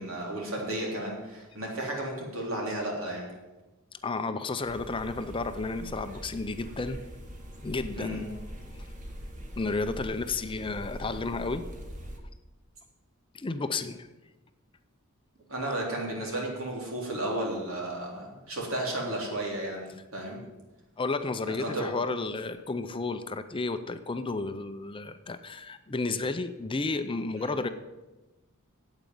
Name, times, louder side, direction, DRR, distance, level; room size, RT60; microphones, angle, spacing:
voice 1, 0.0-3.3 8.0-8.3 15.5-20.4 21.4-21.9 27.4-27.5, right 1 dB, 75° right, -1 dB, 3.6 m, -33 dB
voice 2, 4.0-7.0 7.6-8.3 9.6-11.6 13.3-14.1 21.0-27.7, left 3 dB, 25° left, 10 dB, 0.6 m, -32 dB
sound 1, 4.6-12.2, equal, 40° right, 1.7 m, -42 dB
9.0 x 8.3 x 9.2 m, 1.1 s
head